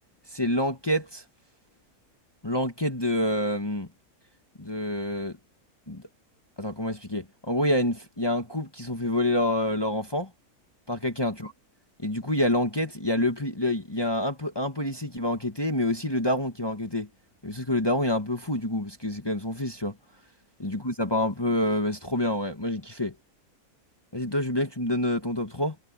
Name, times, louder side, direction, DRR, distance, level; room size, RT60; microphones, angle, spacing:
voice 1, 0.3-1.2 2.4-3.9 4.6-5.4 5.9-6.0 6.6-10.3 10.9-11.5 12.0-17.1 17.4-19.9 20.6-23.1 24.1-25.7, left 1 dB, 15° left, 1.5 m, -27 dB
omnidirectional pair, 1.6 m